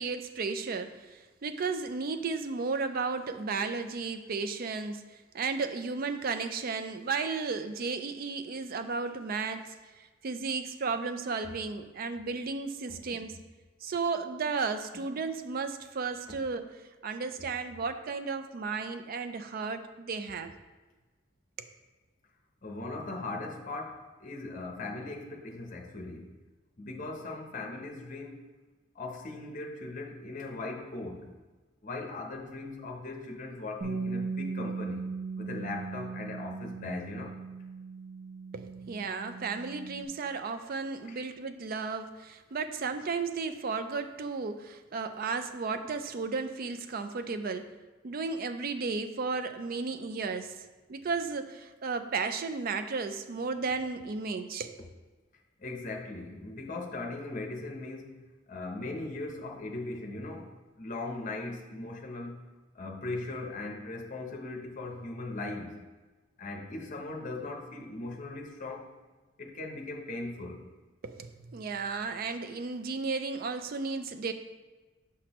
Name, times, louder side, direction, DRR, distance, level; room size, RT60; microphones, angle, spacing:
voice 1, 0.0-5.0 5.3-13.3 13.8-16.7 17.0-20.5 21.6-21.7 38.5-47.7 48.0-50.5 50.9-54.8 71.0-74.3, right 4 dB, 50° right, 9 dB, 0.4 m, -34 dB
voice 2, 12.9-13.2 14.9-15.0 16.3-16.4 22.6-26.3 26.8-28.5 28.9-31.3 31.8-35.0 35.4-37.4 41.0-41.2 55.6-58.2 58.5-62.4 62.7-65.8 66.4-68.9 69.4-70.6, left 2 dB, 40° left, 2 dB, 0.8 m, -39 dB
Bass guitar, 33.8-40.1, right 4 dB, 75° right, 0.9 m, -38 dB
6.0 x 5.8 x 3.0 m, 1.2 s
head